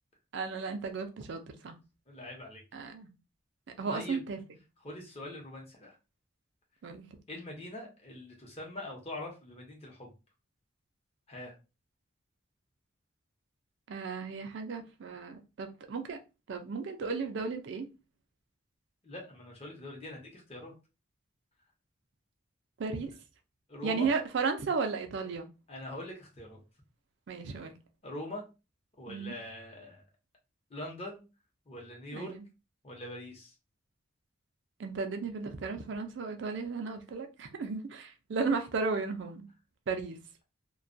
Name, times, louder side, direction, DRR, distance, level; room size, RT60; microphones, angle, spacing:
voice 1, 0.3-1.8 2.7-3.1 3.8-4.4 6.8-7.1 13.9-16.2 16.5-17.9 22.8-23.1 23.8-25.5 27.3-27.7 29.1-29.4 32.1-32.4 34.8-39.5 39.9-40.2, right 4 dB, 60° right, 0.4 m, -34 dB
voice 2, 2.1-2.6 3.9-4.2 4.8-6.0 7.3-10.1 11.3-11.5 19.0-20.7 23.7-24.1 25.7-26.6 28.0-28.4 29.0-30.0 30.7-31.2 31.7-32.3 32.8-33.5, left 1 dB, 30° left, 0.8 m, -43 dB
2.2 x 2.1 x 2.5 m
head